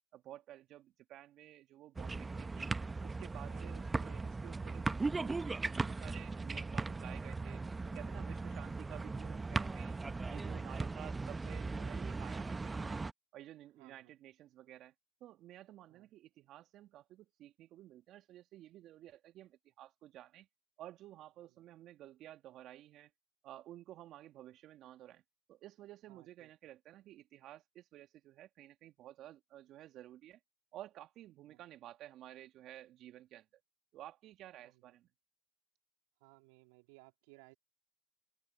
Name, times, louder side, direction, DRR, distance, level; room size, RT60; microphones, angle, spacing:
voice 1, 0.1-2.7 3.0-7.6 7.9-10.0 10.3-13.0 13.3-14.9 15.2-20.5 20.8-23.1 23.4-25.2 25.5-30.4 30.7-33.6 33.9-35.1, right 13 dB, 60° right, 2.0 m, -53 dB
sound 1, 2.0-13.1, right 3 dB, 20° right, 0.9 m, -38 dB
voice 2, 3.5-3.9 8.4-8.7 13.8-14.1 15.9-16.1 21.4-21.6 26.1-26.5 31.5-31.6 34.6-34.9 36.2-37.6, right 25 dB, 75° right, 2.9 m, -62 dB
open air
hypercardioid pair, 75°, 0 cm